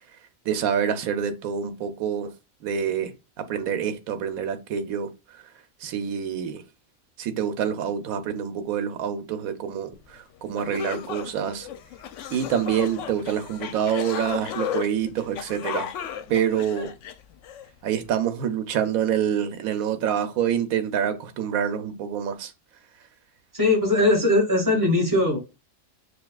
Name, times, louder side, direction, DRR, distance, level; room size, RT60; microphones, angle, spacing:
voice 1, 0.5-2.3 2.6-5.1 5.8-6.6 7.2-11.7 12.3-15.9 16.3-16.9 17.8-22.5, right 8 dB, 80° right, 1.1 m, -26 dB
sound 1, 10.2-10.3 10.6-17.7, left 9 dB, 70° left, 0.8 m, -34 dB
voice 2, 23.5-25.4, left 2 dB, 15° right, 1.5 m, -20 dB
6.7 x 2.3 x 2.3 m
omnidirectional pair, 1.5 m